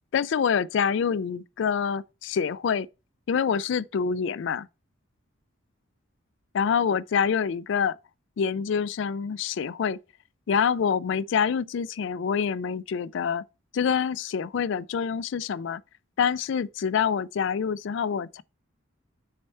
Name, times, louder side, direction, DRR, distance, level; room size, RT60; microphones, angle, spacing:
voice 1, 0.1-2.9 3.3-4.7 6.5-8.0 8.4-10.0 10.5-13.4 13.7-15.8 16.2-18.4, left 6 dB, 60° left, 0.3 m, -26 dB
6.5 x 4.3 x 5.5 m
head